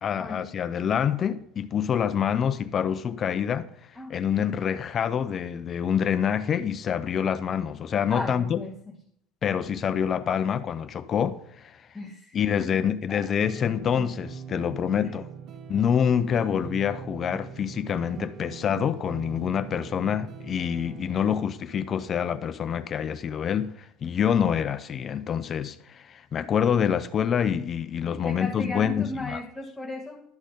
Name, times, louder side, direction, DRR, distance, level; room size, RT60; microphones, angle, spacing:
voice 1, 0.0-3.7 4.1-8.6 9.4-11.9 12.3-15.3 15.7-29.4, left 8 dB, 30° left, 0.4 m, -26 dB
voice 2, 8.1-9.0 11.9-13.3 15.0-15.1 28.1-30.2, left 2 dB, 5° left, 0.7 m, -36 dB
sound 1, 13.4-21.5, right 7 dB, 45° right, 0.6 m, -41 dB
11.5 x 4.2 x 5.1 m
cardioid pair, 155°, 0 cm